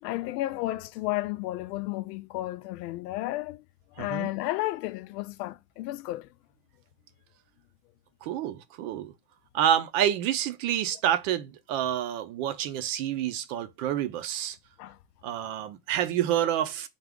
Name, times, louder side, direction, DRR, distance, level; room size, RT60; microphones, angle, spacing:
voice 1, 0.0-3.6 4.0-6.3 14.8-15.0, left 17 dB, 90° left, 0.6 m, -32 dB
voice 2, 4.0-4.3 8.2-9.1 9.5-14.6 15.2-16.9, right 10 dB, 55° right, 0.6 m, -28 dB
3.5 x 2.4 x 3.5 m
supercardioid pair, 160°, 46 cm